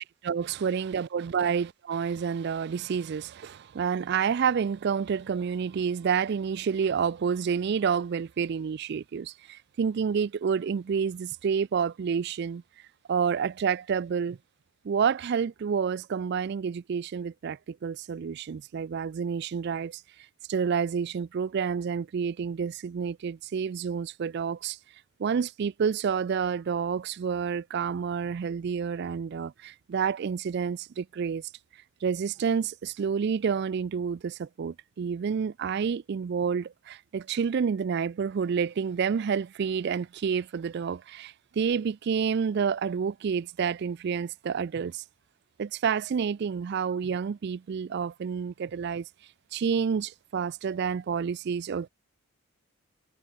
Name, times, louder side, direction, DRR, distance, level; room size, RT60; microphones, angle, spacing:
voice 1, 0.2-12.6 13.1-14.4 14.8-20.0 20.5-24.8 25.2-31.5 32.0-45.0 45.6-49.1 49.5-51.9, right 6 dB, 50° right, 0.3 m, -29 dB
head